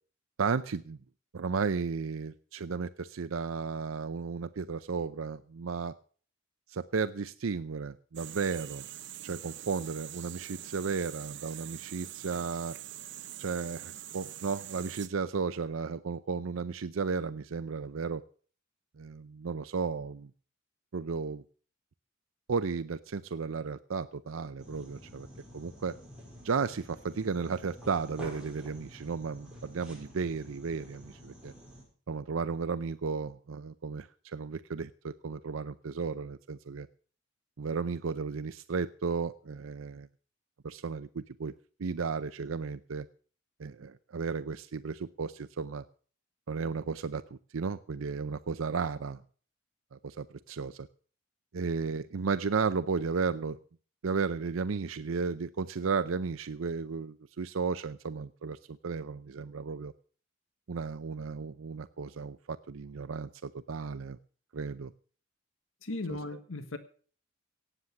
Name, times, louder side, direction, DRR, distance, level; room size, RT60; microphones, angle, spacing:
voice 1, 0.4-1.0 1.3-5.9 6.7-8.9 9.2-12.8 13.4-18.2 19.0-20.3 20.9-21.4 22.5-25.3 25.5-25.9 26.4-31.5 32.1-36.9 37.6-40.1 40.6-41.5 41.8-43.1 43.6-45.8 46.5-49.2 49.9-50.9 51.5-53.6 54.0-59.9 60.7-64.2 64.5-64.9 66.1-66.2, right 5 dB, 90° right, 0.6 m, -34 dB
sound 1, 8.1-15.1, right 13 dB, 60° right, 0.8 m, -44 dB
sound 2, 24.6-31.8, equal, 5° right, 5.3 m, -49 dB
voice 2, 65.8-66.8, left 2 dB, 85° left, 1.3 m, -37 dB
17.5 x 8.0 x 6.9 m
head